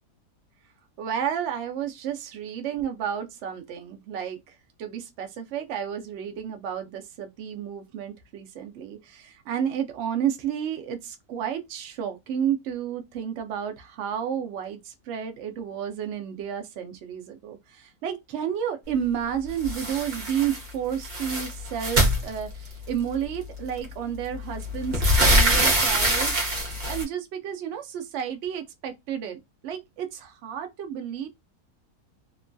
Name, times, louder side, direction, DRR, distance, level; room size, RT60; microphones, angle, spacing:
voice 1, 1.0-4.5 4.8-31.3, right 9 dB, 80° right, 0.6 m, -31 dB
sound 1, 19.6-20.6 20.9-22.9 23.8-23.9 24.3-27.0, equal, 35° right, 0.8 m, -23 dB
3.0 x 2.2 x 2.5 m
omnidirectional pair, 1.7 m